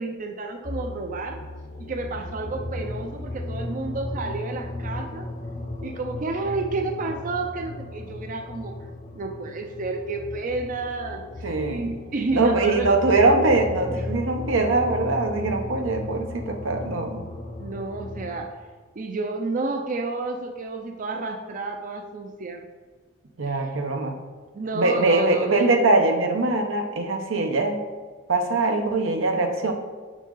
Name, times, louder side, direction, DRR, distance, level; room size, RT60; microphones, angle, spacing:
voice 1, 0.0-1.4 1.8-5.3 5.8-8.8 9.1-11.2 11.6-12.9 13.9-14.0 17.6-18.6 19.0-22.6 23.5-23.6 24.5-25.5, right 3 dB, 40° right, 4 dB, 0.5 m, -30 dB
sound 1, 0.6-18.5, left 1 dB, 35° left, 0.8 m, -35 dB
voice 2, 11.4-11.9 12.3-17.2 23.4-24.2 24.7-27.8 28.3-29.7, right 2 dB, 85° right, 4 dB, 0.9 m, -22 dB
6.6 x 6.3 x 3.8 m, 1.4 s
head